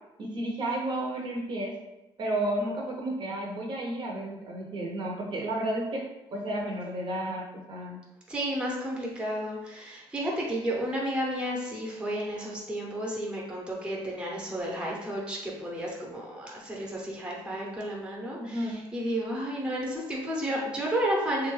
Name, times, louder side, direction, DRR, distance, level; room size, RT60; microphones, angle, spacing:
voice 1, 0.2-1.8 2.2-6.0 6.3-8.0 18.4-18.8, right 1 dB, 50° right, -1 dB, 0.6 m, -32 dB
voice 2, 8.3-21.5, right 1 dB, 10° right, -3 dB, 0.7 m, -32 dB
3.5 x 2.2 x 3.1 m, 0.97 s
cardioid pair, 135°, 10 cm